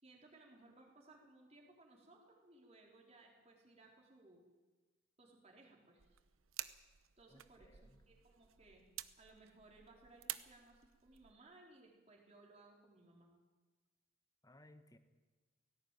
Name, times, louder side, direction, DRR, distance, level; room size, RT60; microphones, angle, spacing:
voice 1, 0.0-4.4 5.2-6.1 7.2-8.8 9.2-13.3, right 2 dB, 30° right, -1 dB, 4.1 m, -63 dB
sound 1, 6.0-11.3, right 13 dB, 85° right, 0.9 m, -51 dB
voice 2, 7.3-8.1 14.4-15.0, left 1 dB, 15° left, 9 dB, 1.2 m, -63 dB
18.0 x 17.0 x 9.2 m, 1.3 s
head